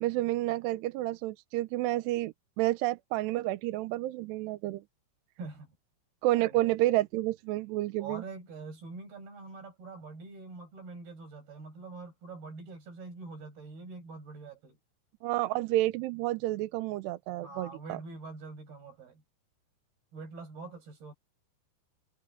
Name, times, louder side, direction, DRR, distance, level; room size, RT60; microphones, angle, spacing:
voice 1, 0.0-4.8 6.2-8.2 15.2-18.0, right 16 dB, 85° right, 2.8 m, -30 dB
voice 2, 5.4-5.8 6.4-6.9 8.0-14.8 17.4-19.2 20.1-21.1, right 4 dB, 60° right, 8.5 m, -45 dB
omnidirectional pair, 5.0 m